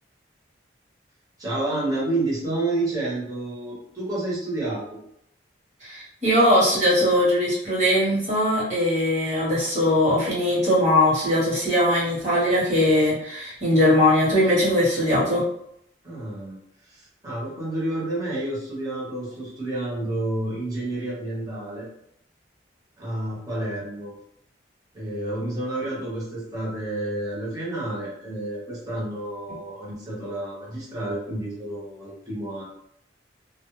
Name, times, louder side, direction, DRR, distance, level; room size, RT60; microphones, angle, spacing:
voice 1, 1.4-5.0 16.0-16.6 16.9-21.9 23.0-24.1 24.9-32.6, right 2 dB, 20° right, -6 dB, 0.9 m, -30 dB
voice 2, 5.8-15.4, left 1 dB, 40° right, -7 dB, 1.1 m, -20 dB
2.2 x 2.1 x 3.0 m, 0.72 s
head